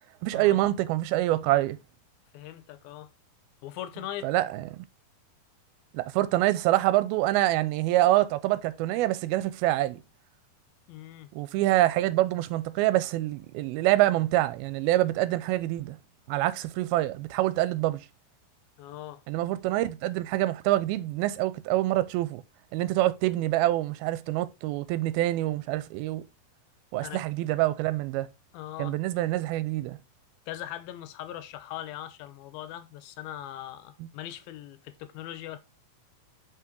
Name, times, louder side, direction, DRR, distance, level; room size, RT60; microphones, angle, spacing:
voice 1, 0.2-1.8 4.2-4.8 5.9-10.0 11.3-16.0 16.3-18.0 19.3-22.4 22.7-26.2 26.9-28.3 28.8-30.0, right 16 dB, 85° right, 2.5 m, -26 dB
voice 2, 2.3-3.1 3.6-4.3 10.9-11.3 18.8-19.2 27.0-27.2 28.5-29.0 30.5-35.6, left 12 dB, 85° left, 2.5 m, -40 dB
5.6 x 5.6 x 3.7 m
omnidirectional pair, 4.4 m